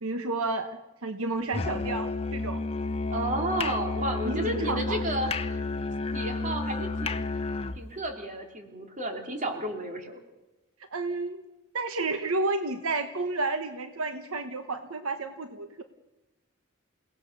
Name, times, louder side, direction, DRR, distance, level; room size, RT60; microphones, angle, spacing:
voice 1, 0.0-0.7 1.0-2.6 4.2-5.1 10.9-11.4 11.7-15.8, right 3 dB, 70° right, 8 dB, 1.1 m, -31 dB
Musical instrument, 1.5-7.8, left 3 dB, 30° left, 0.8 m, -31 dB
voice 2, 3.1-5.6 6.1-7.3 7.8-10.2, right 1 dB, 35° right, 4 dB, 2.9 m, -32 dB
28.5 x 17.5 x 6.5 m, 1.1 s
head